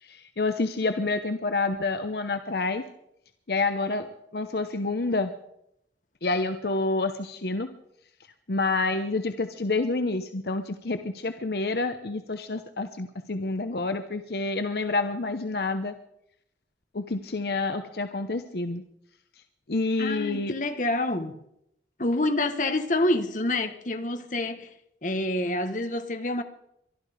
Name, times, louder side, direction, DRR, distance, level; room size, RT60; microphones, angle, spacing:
voice 1, 0.0-2.8 3.5-5.3 6.2-7.7 8.5-15.9 16.9-18.8 19.7-20.5, left 3 dB, 65° left, 0.9 m, -28 dB
voice 2, 20.0-21.4 22.0-24.7 25.0-26.4, left 2 dB, 45° left, 1.3 m, -27 dB
23.5 x 12.0 x 5.0 m
head